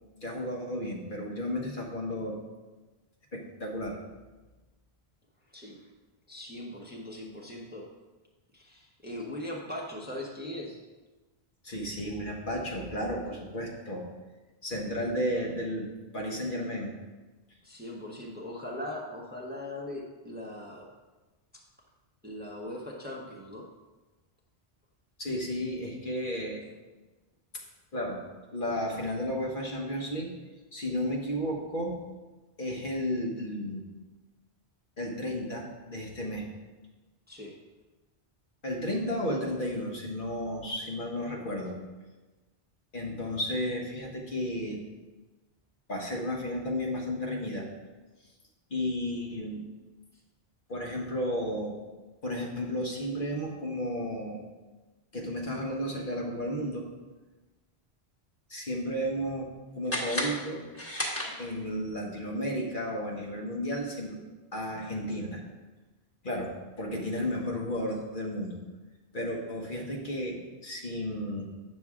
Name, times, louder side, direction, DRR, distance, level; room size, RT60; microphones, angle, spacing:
voice 1, 0.2-2.4 3.3-4.0 11.6-14.1 14.6-16.9 25.2-26.7 27.5-27.6 27.9-28.2 28.5-30.3 30.7-32.2 32.6-33.9 35.0-36.5 38.6-41.8 42.9-44.8 45.9-47.7 48.7-49.6 50.7-51.8 52.2-54.4 55.1-56.9 58.5-60.7 61.4-64.2 64.5-65.4 66.2-68.6 69.1-71.4, equal, 55° left, -1 dB, 1.3 m, -33 dB
voice 2, 6.3-7.9 8.5-10.8 17.6-20.9 21.5-21.6 22.2-23.7 37.3-37.5, left 1 dB, 10° right, -2 dB, 1.0 m, -40 dB
sound 1, 59.9-61.8, left 1 dB, 15° left, 1.4 m, -34 dB
8.8 x 6.3 x 3.6 m, 1.2 s
omnidirectional pair, 1.1 m